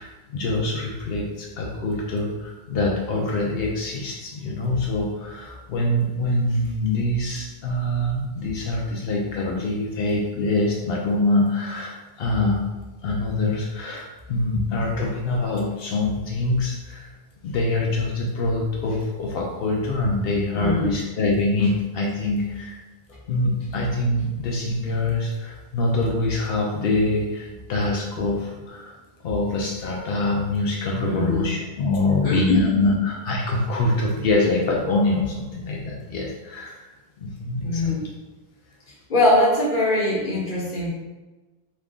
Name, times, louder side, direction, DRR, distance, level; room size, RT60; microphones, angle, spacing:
voice 1, 0.0-12.6 13.0-17.1 17.4-22.8 23.3-29.0 29.2-38.1, left 2 dB, 75° left, -1 dB, 0.8 m, -24 dB
voice 2, 20.5-20.9 29.5-29.6 31.0-31.6 32.2-32.7 37.6-38.1 39.1-40.9, left 1 dB, 50° left, -6 dB, 1.3 m, -22 dB
3.2 x 2.5 x 3.5 m, 1.1 s
omnidirectional pair, 1.0 m